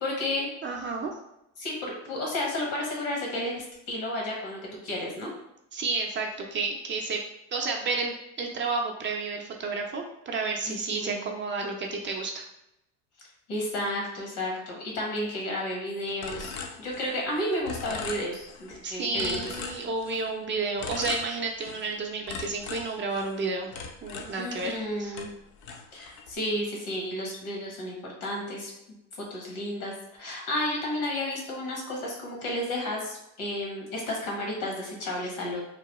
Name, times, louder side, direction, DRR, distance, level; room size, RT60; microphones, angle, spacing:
voice 1, 0.0-0.5 1.6-5.3 10.7-10.8 11.0-11.3 13.5-16.5 16.8-19.5 24.4-25.3 25.9-28.7 29.2-29.9 30.2-35.6, left 1 dB, 75° left, -1 dB, 1.3 m, -32 dB
voice 2, 0.6-1.2 5.7-7.2 7.5-12.4 18.8-23.7 24.0-24.7 25.0-25.2, right 4 dB, 30° right, 1 dB, 0.5 m, -31 dB
sound 1, 16.2-17.4 17.6-18.8 19.1-20.3 20.8-21.9 22.3-24.9 25.1-26.3, left 5 dB, 50° left, 0.6 m, -39 dB
3.0 x 2.2 x 2.9 m, 0.84 s
supercardioid pair, 90°, 38 cm